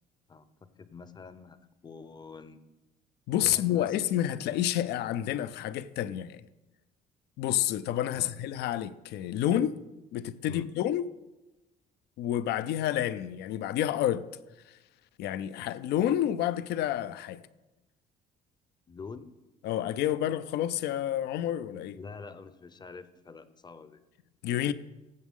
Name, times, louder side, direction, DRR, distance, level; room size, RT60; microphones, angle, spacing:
voice 1, 0.3-2.6 3.4-4.1 8.1-8.4 10.5-10.7 18.9-19.3 21.9-24.0, left 4 dB, 25° left, 0.6 m, -46 dB
voice 2, 3.3-6.4 7.4-9.8 10.1-11.0 12.2-14.2 14.7-14.8 15.2-17.4 19.6-22.0 24.4-24.7, left 12 dB, 75° left, 0.5 m, -29 dB
15.5 x 7.2 x 3.7 m
cardioid pair, 110°, 17 cm